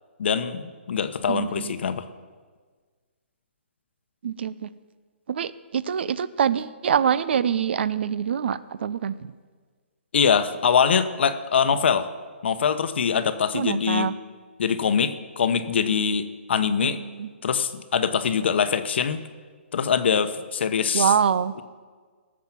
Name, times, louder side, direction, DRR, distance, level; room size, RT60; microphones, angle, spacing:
voice 1, 0.2-2.0 10.1-12.1 12.4-14.1 14.6-17.0 17.4-19.2 19.7-21.2, left 7 dB, 60° left, 11 dB, 1.0 m, -23 dB
voice 2, 1.3-1.7 4.2-4.7 5.3-9.1 13.5-14.1 17.2-17.3 20.9-21.5, right 8 dB, 55° right, 17 dB, 0.6 m, -24 dB
19.0 x 7.5 x 6.0 m, 1.5 s
hypercardioid pair, 160°, 7 cm